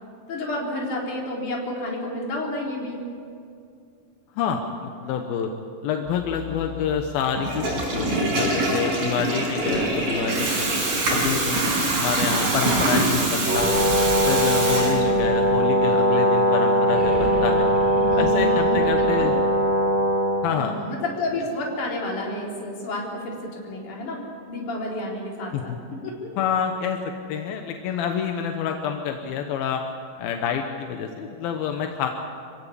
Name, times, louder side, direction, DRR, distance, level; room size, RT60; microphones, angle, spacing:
voice 1, 0.3-3.0 14.8-15.2 17.9-18.9 19.2-19.4 20.5-25.7 26.0-26.3, left 2 dB, 60° left, -2 dB, 5.3 m, -30 dB
voice 2, 4.4-5.5 5.8-7.6 7.9-10.7 11.1-13.8 14.3-17.7 18.2-19.3 20.4-20.8 25.5-25.8 26.4-27.0 27.3-29.9 30.2-32.1, left 7 dB, 85° left, 4 dB, 3.0 m, -27 dB
sound 1, 6.1-8.1 9.5-13.1 13.5-15.8 16.8-19.6, equal, 15° left, 3.4 m, -34 dB
Water tap faucet / Toilet flush, 7.3-15.4, right 2 dB, 75° right, 6.8 m, -24 dB
Brass instrument, 13.4-20.5, equal, 5° right, 3.3 m, -20 dB
26.0 x 16.5 x 8.6 m, 2.4 s
omnidirectional pair, 4.1 m